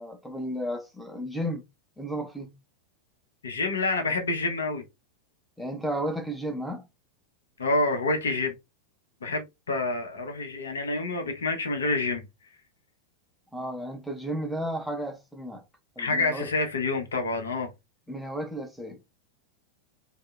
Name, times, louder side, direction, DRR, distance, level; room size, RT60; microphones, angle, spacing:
voice 1, 0.0-1.6 2.0-2.6 5.6-6.9 13.5-15.6 16.0-16.5 18.1-19.0, equal, ahead, 0.6 m, -33 dB
voice 2, 3.4-4.8 7.6-8.5 9.2-12.2 16.0-17.7, left 3 dB, 70° left, 0.7 m, -27 dB
2.7 x 2.0 x 2.3 m
figure-of-eight pair, 90°, 0 cm